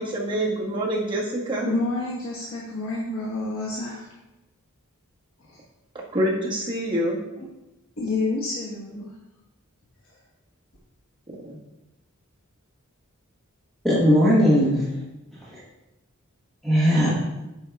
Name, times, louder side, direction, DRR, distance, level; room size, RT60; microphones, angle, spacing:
voice 1, 0.0-1.7 6.1-7.2 11.4-11.6, right 1 dB, 20° right, -4 dB, 1.6 m, -26 dB
voice 2, 1.6-4.1 5.5-5.6 8.0-9.1, left 2 dB, 70° left, -5 dB, 1.2 m, -28 dB
voice 3, 13.8-14.8 15.5-15.6 16.6-17.1, equal, ahead, -8 dB, 1.2 m, -18 dB
8.4 x 4.8 x 3.4 m, 0.97 s
head